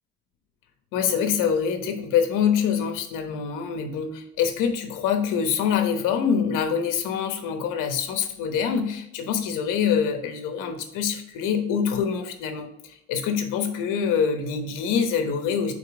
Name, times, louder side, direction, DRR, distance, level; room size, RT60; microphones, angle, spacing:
voice 1, 0.9-12.7 13.1-15.7, left 7 dB, 75° left, 6 dB, 1.1 m, -25 dB
5.2 x 4.6 x 4.8 m, 0.79 s
cardioid pair, 165°, 32 cm